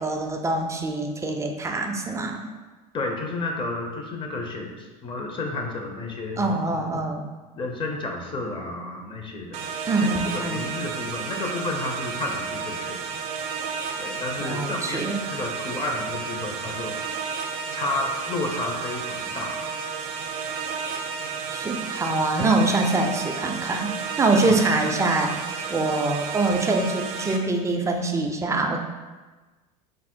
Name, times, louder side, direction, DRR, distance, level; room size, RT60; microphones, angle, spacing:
voice 1, 0.0-2.4 6.4-7.3 9.9-10.8 14.4-15.2 21.5-23.9 24.2-25.4 25.7-28.8, right 2 dB, 15° right, 3 dB, 0.4 m, -24 dB
voice 2, 2.9-7.0 7.6-9.7 10.0-10.1 10.3-13.1 14.0-15.0 15.3-17.0 17.7-19.6 21.6-21.8 24.5-24.6 25.7-25.8, left 2 dB, 25° left, 2 dB, 0.6 m, -31 dB
sound 1, 9.5-27.4, right 6 dB, 70° right, 0.5 m, -32 dB
3.6 x 2.0 x 4.3 m, 1.3 s
hypercardioid pair, 90°, 19 cm